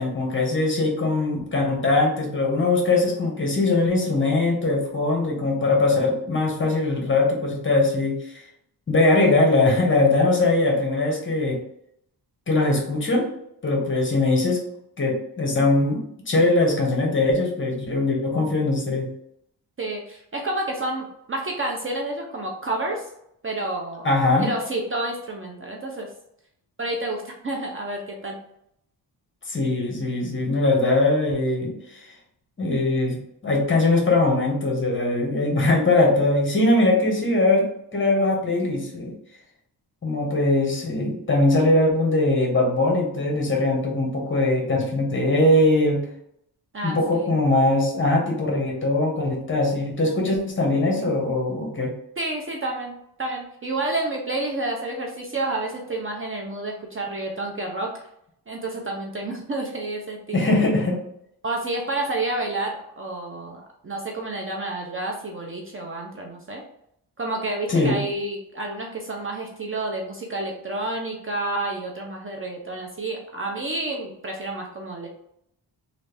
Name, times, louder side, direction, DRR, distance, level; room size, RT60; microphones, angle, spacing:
voice 1, 0.0-8.2 8.9-11.6 12.5-13.3 13.6-14.6 15.0-19.1 24.0-24.5 29.5-31.7 32.6-37.7 37.9-39.1 40.0-46.1 46.8-51.9 60.3-61.0 67.7-68.0, left 2 dB, 30° left, 0 dB, 1.0 m, -21 dB
voice 2, 19.8-23.1 23.4-24.1 24.4-26.1 26.8-28.4 46.7-47.3 52.2-58.0 58.5-60.4 61.4-66.6 67.2-75.1, right 2 dB, 30° right, 0 dB, 0.5 m, -29 dB
3.1 x 2.5 x 3.3 m, 0.75 s
wide cardioid pair, 120°, 41 cm